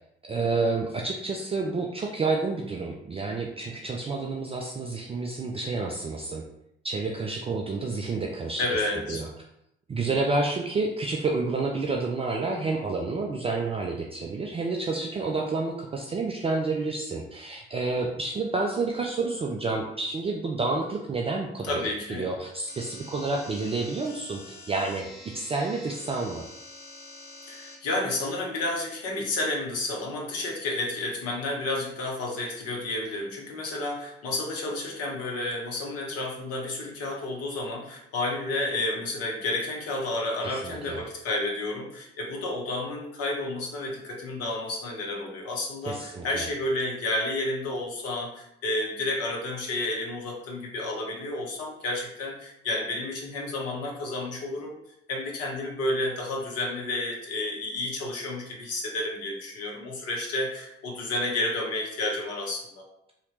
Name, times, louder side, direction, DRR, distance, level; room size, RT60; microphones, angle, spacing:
voice 1, 0.2-6.4 6.8-8.8 9.1-9.3 9.9-21.8 22.1-25.1 25.3-26.4 40.4-41.0 45.9-46.5, right 3 dB, 20° right, 0 dB, 0.4 m, -29 dB
voice 2, 8.6-9.2 21.6-22.3 27.5-54.8 55.1-62.8, left 2 dB, 55° left, -1 dB, 1.0 m, -31 dB
sound 1, 22.7-27.8, left 2 dB, 30° left, 1.2 m, -46 dB
2.8 x 2.8 x 3.1 m, 0.77 s
figure-of-eight pair, 45°, 29 cm